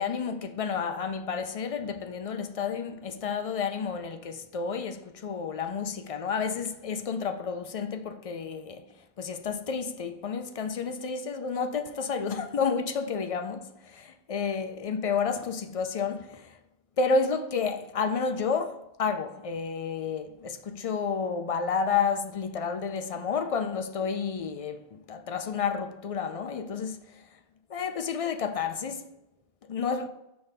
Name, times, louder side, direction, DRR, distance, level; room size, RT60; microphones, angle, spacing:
voice 1, 0.0-16.6 17.0-27.2 27.7-29.1 29.7-30.1, left 5 dB, 55° left, 0.4 m, -31 dB
5.5 x 3.4 x 5.6 m
omnidirectional pair, 1.1 m